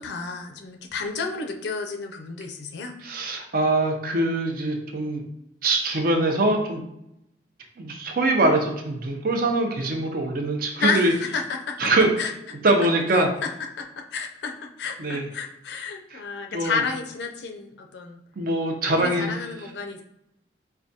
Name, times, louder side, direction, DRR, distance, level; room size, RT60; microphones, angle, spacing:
voice 1, 0.0-2.9 10.8-11.9 12.2-12.3 13.1-13.5 13.8-18.2 18.8-20.0, left 5 dB, 70° left, 4 dB, 0.4 m, -31 dB
voice 2, 3.0-5.2 5.6-6.8 7.8-11.1 11.8-12.1 12.6-13.3 15.0-15.3 16.1-16.2 16.5-16.8 18.4-19.3, right 2 dB, 55° right, 3 dB, 0.6 m, -23 dB
4.6 x 2.2 x 2.6 m, 0.83 s
head